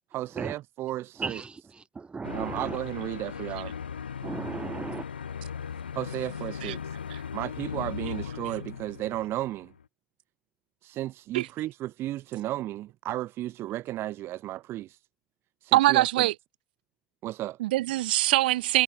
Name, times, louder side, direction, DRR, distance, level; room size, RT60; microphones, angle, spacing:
voice 1, 0.1-1.5 2.3-3.7 6.0-7.0 7.3-9.7 10.8-15.0 15.6-16.3 17.2-17.6, right 15 dB, 50° right, 1.7 m, -34 dB
voice 2, 1.2-1.5 2.0-2.8 4.2-5.0, right 4 dB, 20° right, 0.7 m, -35 dB
sound 1, 2.2-9.8, left 7 dB, 85° left, 3.7 m, -38 dB
voice 3, 15.7-16.4 17.6-18.8, right 16 dB, 70° right, 1.3 m, -23 dB
figure-of-eight pair, 70°, 5 cm